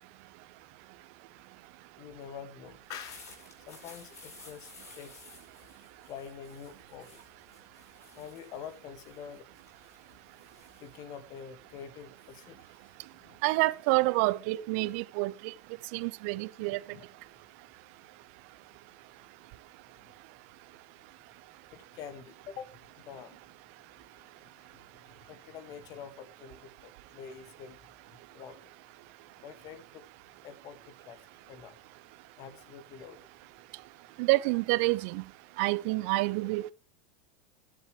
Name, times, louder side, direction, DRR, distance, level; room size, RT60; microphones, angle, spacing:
voice 1, 2.0-5.2 6.1-7.2 8.2-9.5 10.8-12.8 13.2-13.4 16.6-17.1 21.7-22.8 23.0-23.4 24.4-27.8 28.3-28.7 29.4-30.1 30.4-31.8 32.4-33.2, left 7 dB, 50° left, 2.1 m, -46 dB
sound 1, 2.7-12.0, left 4 dB, 75° left, 5.9 m, -55 dB
voice 2, 13.4-15.3 15.9-16.8 34.2-35.2 35.6-36.7, right 22 dB, 60° right, 0.8 m, -27 dB
20.0 x 7.8 x 3.4 m
figure-of-eight pair, 80°, 8 cm